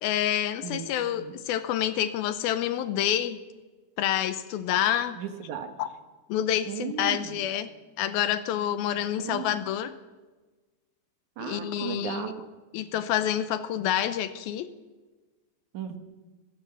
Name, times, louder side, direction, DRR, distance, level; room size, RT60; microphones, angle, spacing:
voice 1, 0.0-3.4 4.0-5.2 5.8-5.9 6.3-7.7 8.0-9.9 11.4-12.3 12.7-14.7, left 11 dB, 75° left, 13 dB, 2.3 m, -28 dB
voice 2, 5.2-5.7 6.7-7.4 9.2-9.6 11.4-12.4 15.7-16.0, right 8 dB, 60° right, 7 dB, 2.2 m, -36 dB
24.0 x 15.5 x 7.0 m, 1.3 s
omnidirectional pair, 5.0 m